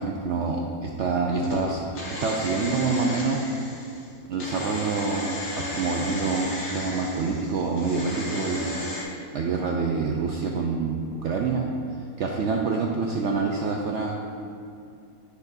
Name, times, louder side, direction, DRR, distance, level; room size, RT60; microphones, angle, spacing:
voice 1, 0.0-1.8 2.2-3.4 4.3-6.5 6.7-8.7 9.3-11.7 12.2-14.2, right 4 dB, 65° right, 0 dB, 0.7 m, -26 dB
sound 1, 1.4-9.0, left 1 dB, 60° left, 1.6 m, -35 dB
9.6 x 6.8 x 2.6 m, 2.4 s
omnidirectional pair, 1.6 m